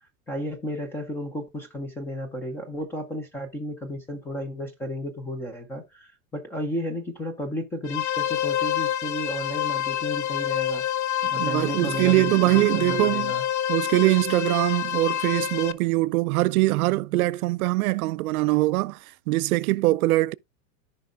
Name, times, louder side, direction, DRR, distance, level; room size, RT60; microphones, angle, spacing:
voice 1, 0.3-10.9 11.3-13.4, equal, 5° left, 0.3 m, -33 dB
sound 1, 7.8-15.7, left 11 dB, 55° left, 0.7 m, -28 dB
voice 2, 11.2-13.3 13.7-19.0 19.3-20.3, right 19 dB, 90° right, 0.5 m, -22 dB
14.0 x 5.3 x 2.4 m
supercardioid pair, 160°, 42 cm